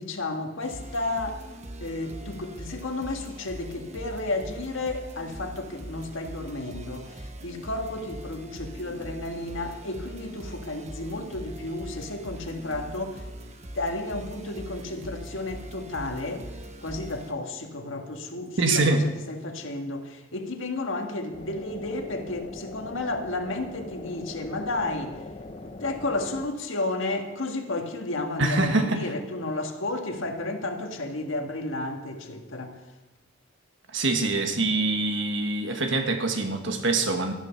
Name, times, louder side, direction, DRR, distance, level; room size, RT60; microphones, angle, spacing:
voice 1, 0.0-1.4 1.8-13.3 13.7-16.5 16.8-25.2 25.8-32.8, left 2 dB, 65° left, 4 dB, 1.7 m, -32 dB
sound 1, 0.6-17.3, right 1 dB, 30° right, 1.0 m, -42 dB
voice 2, 18.6-19.0 28.4-29.0 33.9-37.3, right 2 dB, 60° right, 5 dB, 1.5 m, -24 dB
sound 2, 21.3-26.5, left 2 dB, 30° left, 0.7 m, -41 dB
14.0 x 10.5 x 5.9 m, 1.1 s
head